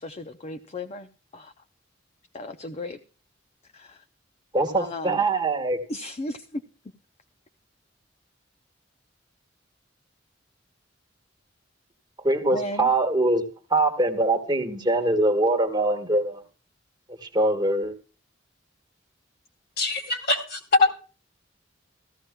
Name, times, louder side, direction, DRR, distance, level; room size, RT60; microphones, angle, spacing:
voice 1, 0.0-1.5 2.3-3.0 3.7-4.0 4.8-5.2 5.9-6.6 12.5-12.9, left 1 dB, 35° left, 0.6 m, -35 dB
voice 2, 4.5-5.8 12.2-16.4 17.2-17.9, right 2 dB, 25° right, 1.4 m, -23 dB
voice 3, 19.8-20.9, left 3 dB, 55° left, 2.7 m, -22 dB
15.5 x 14.5 x 2.2 m
head